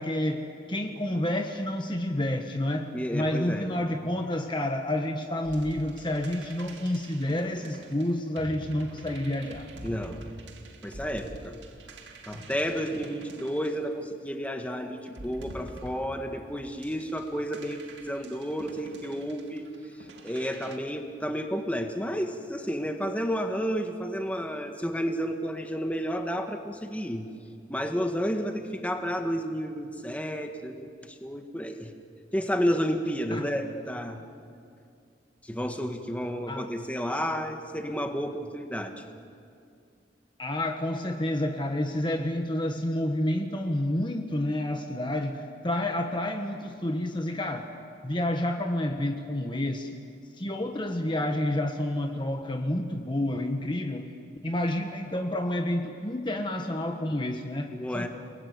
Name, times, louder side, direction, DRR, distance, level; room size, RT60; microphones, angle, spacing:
voice 1, 0.0-9.7 33.3-33.5 36.5-36.7 40.4-47.7 48.0-50.0 50.4-54.1 54.4-58.1, left 1 dB, 25° left, 4 dB, 1.4 m, -29 dB
voice 2, 2.9-3.6 9.8-10.2 10.8-11.6 12.3-19.7 20.0-27.3 27.7-31.9 32.3-34.2 35.4-39.0 57.7-58.1, equal, 10° left, 4 dB, 1.6 m, -31 dB
sound 1, 5.4-14.5 15.1-20.8, right 1 dB, 80° right, 2.2 m, -46 dB
29.5 x 21.0 x 9.6 m, 2.4 s
head